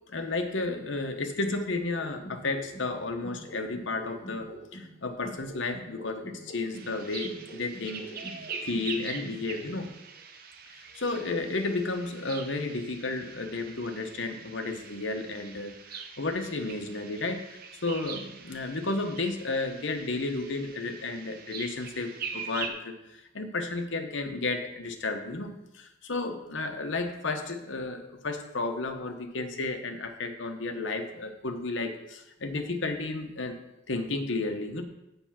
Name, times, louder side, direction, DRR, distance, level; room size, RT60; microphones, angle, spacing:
voice 1, 0.1-8.0 8.6-9.9 10.7-33.6 33.9-34.8, left 3 dB, 70° left, 5 dB, 0.9 m, -32 dB
sound 1, 2.0-4.9 5.2-8.9 9.2-9.9, right 1 dB, 30° left, 1.6 m, -45 dB
sound 2, 6.7-22.7, right 6 dB, 45° right, 0.8 m, -43 dB
7.0 x 5.6 x 5.8 m, 0.91 s
head